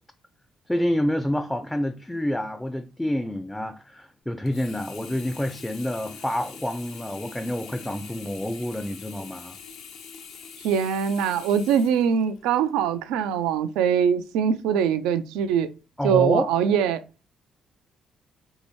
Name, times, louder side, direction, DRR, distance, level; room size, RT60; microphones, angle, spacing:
voice 1, 0.7-9.6 16.0-16.5, left 1 dB, 10° left, 0.4 m, -28 dB
Sink (filling or washing), 4.5-12.7 13.2-13.3, left 6 dB, 70° left, 0.6 m, -44 dB
voice 2, 10.6-15.7 16.0-17.0, right 8 dB, 80° right, 0.3 m, -22 dB
3.2 x 2.7 x 3.0 m
hypercardioid pair, 50°, 0 cm